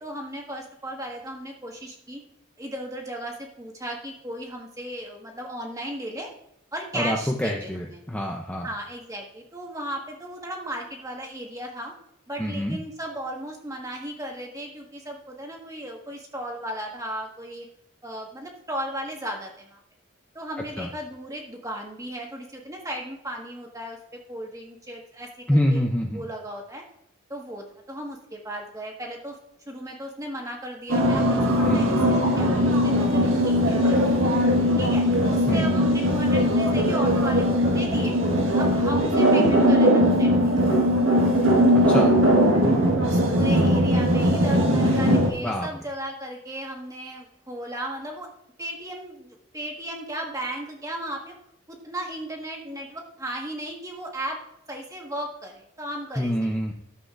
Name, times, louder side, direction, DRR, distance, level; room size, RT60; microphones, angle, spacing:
voice 1, 0.0-2.2 2.6-6.3 6.7-8.0 8.6-11.9 12.3-17.6 18.0-19.8 20.3-25.8 26.1-26.8 27.3-29.4 29.7-34.0 34.8-38.2 38.6-40.5 43.1-48.3 48.6-51.3 51.7-54.4 54.7-56.5, right 1 dB, 15° right, 0 dB, 1.5 m, -35 dB
voice 2, 6.9-8.7 12.4-12.8 20.8-20.9 25.5-26.2 31.6-32.0 35.5-35.7 41.9-42.1 45.4-45.7 56.2-56.7, equal, 5° left, 0 dB, 0.6 m, -26 dB
sound 1, 30.9-45.3, equal, 80° right, 1.6 m, -20 dB
13.0 x 7.6 x 2.5 m, 0.76 s
head